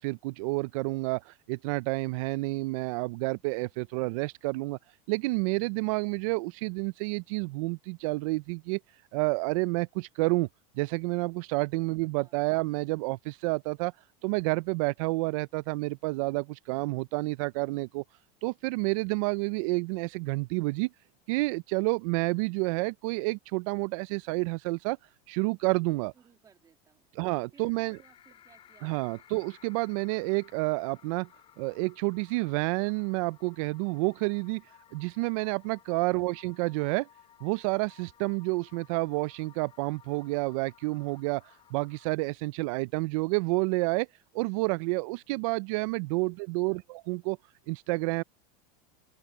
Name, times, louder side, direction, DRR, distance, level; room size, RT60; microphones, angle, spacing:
voice 1, 0.0-4.8 5.1-8.8 9.1-10.5 10.8-13.9 14.2-18.0 18.4-20.9 21.3-25.0 25.3-26.1 27.2-28.0 28.8-31.3 31.6-34.6 34.9-37.1 37.4-41.4 41.7-44.1 44.3-47.4 47.7-48.2, right 25 dB, 55° right, 0.4 m, -29 dB
voice 2, 26.1-27.1 27.5-29.2 36.0-36.4 46.2-46.3 46.6-46.9, right 7 dB, 15° right, 2.3 m, -61 dB
sound 1, 27.5-42.1, left 10 dB, 25° left, 4.5 m, -58 dB
open air
supercardioid pair, 165°, 21 cm